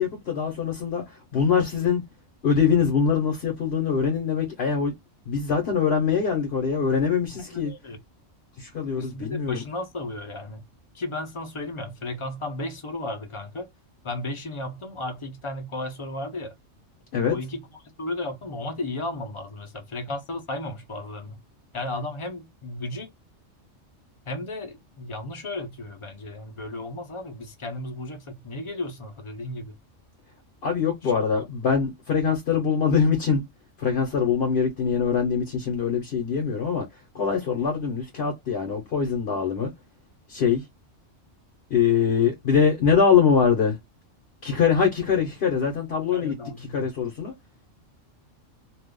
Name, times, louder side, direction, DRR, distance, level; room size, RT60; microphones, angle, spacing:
voice 1, 0.0-2.0 2.4-4.9 5.3-7.7 8.6-9.6 17.1-17.3 30.6-33.4 33.8-36.9 37.1-39.7 40.3-40.7 41.7-43.8 44.4-46.4 46.7-47.3, left 6 dB, 55° left, 1.1 m, -23 dB
voice 2, 7.4-8.0 9.0-10.6 10.9-13.7 14.0-16.5 17.3-17.7 18.0-21.4 21.7-23.1 24.3-29.8 31.0-31.1 46.1-46.9, left 2 dB, 30° left, 0.6 m, -34 dB
2.6 x 2.4 x 3.6 m
omnidirectional pair, 1.3 m